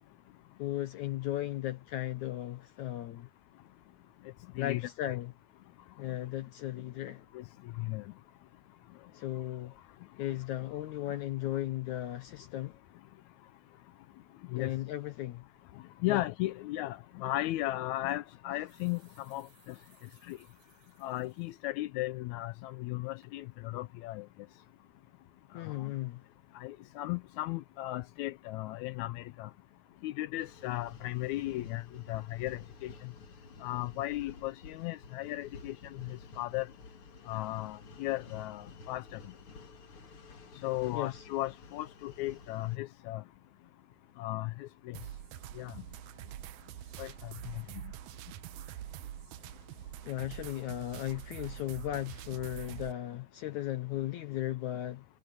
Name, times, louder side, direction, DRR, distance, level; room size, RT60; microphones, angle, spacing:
voice 1, 0.6-3.3 4.6-5.3 6.0-7.3 9.1-9.8 10.2-12.8 14.5-15.4 16.1-16.2 25.5-26.2 40.9-41.2 50.1-55.0, left 14 dB, 70° left, 2.1 m, -36 dB
voice 2, 4.6-5.2 7.3-7.4 7.8-8.0 14.5-14.7 16.0-19.0 19.3-19.5 20.3-20.4 21.0-24.2 26.5-29.5 30.0-31.8 32.1-32.9 33.6-36.7 37.3-39.2 40.6-43.2 44.2-44.9 45.6-45.7 47.0-47.1, left 17 dB, 85° left, 1.6 m, -36 dB
sound 1, 17.1-17.3 18.3-21.6 22.1-22.2 22.7-23.0 23.2-23.4, right 3 dB, 40° right, 7.9 m, -65 dB
sound 2, 30.4-42.8, left 3 dB, 40° left, 3.1 m, -52 dB
sound 3, 44.9-52.9, right 12 dB, 75° right, 1.9 m, -45 dB
omnidirectional pair, 3.9 m